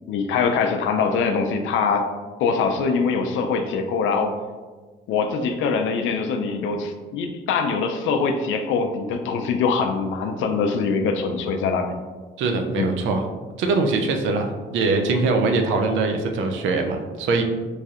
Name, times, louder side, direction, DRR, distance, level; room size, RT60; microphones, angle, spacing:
voice 1, 0.1-2.1 2.4-4.3 5.1-11.9 12.8-12.9, left 5 dB, 80° left, 5 dB, 0.4 m, -23 dB
voice 2, 12.4-13.2 13.6-17.4, right 3 dB, 75° right, 4 dB, 0.4 m, -22 dB
3.2 x 2.6 x 2.4 m, 1.4 s
cardioid pair, 90°, 20 cm